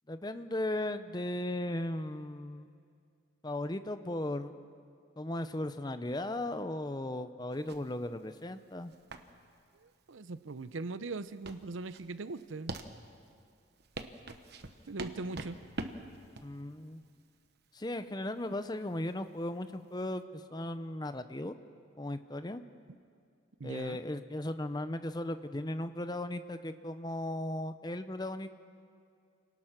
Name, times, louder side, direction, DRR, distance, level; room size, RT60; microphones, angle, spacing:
voice 1, 0.1-2.7 3.4-4.5 5.2-8.9 16.4-17.0 17.7-21.5 22.0-22.6 23.6-28.5, left 1 dB, 20° left, 10 dB, 0.7 m, -36 dB
sound 1, 7.5-20.2, right 2 dB, 55° right, 1.1 m, -46 dB
voice 2, 10.1-12.8 14.9-15.6 23.6-24.0, right 3 dB, 75° right, 14 dB, 0.7 m, -40 dB
28.0 x 18.5 x 6.0 m, 2.3 s
head